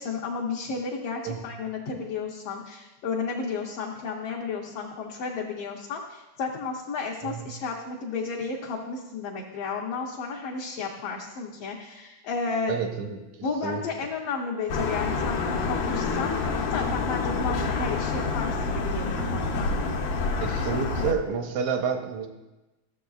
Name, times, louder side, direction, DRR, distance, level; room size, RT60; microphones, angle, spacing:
voice 1, 0.0-12.7 13.4-16.4 16.7-19.7, left 4 dB, 70° left, -2 dB, 1.5 m, -32 dB
voice 2, 12.7-13.2 13.6-13.8 17.5-17.7 20.4-22.3, right 6 dB, 85° right, 5 dB, 2.1 m, -29 dB
sound 1, 14.7-21.1, left 4 dB, 90° left, 2.3 m, -27 dB
14.5 x 7.0 x 2.3 m, 1.1 s
omnidirectional pair, 3.3 m